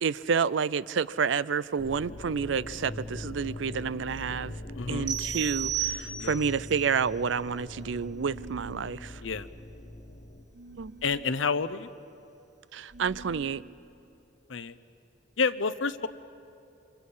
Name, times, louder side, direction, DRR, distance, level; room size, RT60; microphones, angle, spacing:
voice 1, 0.0-4.6 4.9-9.2 10.8-10.9 12.7-13.6, right 6 dB, 80° right, 0.5 m, -29 dB
sound 1, 1.8-10.4, left 1 dB, 45° left, 1.3 m, -42 dB
voice 2, 4.8-5.1 6.2-6.3 9.2-9.5 11.0-11.9 14.5-14.8 15.4-16.1, left 5 dB, 90° left, 0.8 m, -29 dB
sound 2, 5.1-6.6, right 9 dB, 25° right, 3.2 m, -32 dB
sound 3, 8.2-8.9 10.5-11.4 12.9-13.6, right 3 dB, 60° right, 1.8 m, -46 dB
29.5 x 26.5 x 5.6 m
head